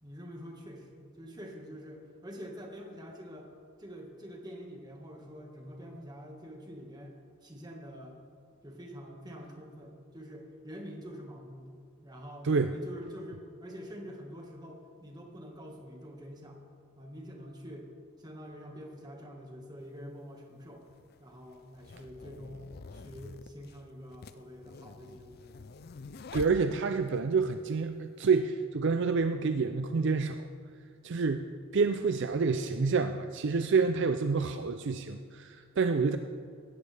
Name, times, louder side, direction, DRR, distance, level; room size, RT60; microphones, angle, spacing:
voice 1, 0.0-3.5 3.8-7.1 7.4-8.2 8.6-16.6 17.0-17.9 18.2-20.8 21.2-25.4, equal, 20° right, 1 dB, 1.6 m, -46 dB
sound 1, 19.8-19.9 20.8-27.2, left 4 dB, 45° left, 0.4 m, -47 dB
voice 2, 26.3-30.4 31.0-31.5 31.7-36.2, right 4 dB, 55° right, 9 dB, 0.4 m, -28 dB
18.0 x 13.5 x 3.4 m, 2.2 s
head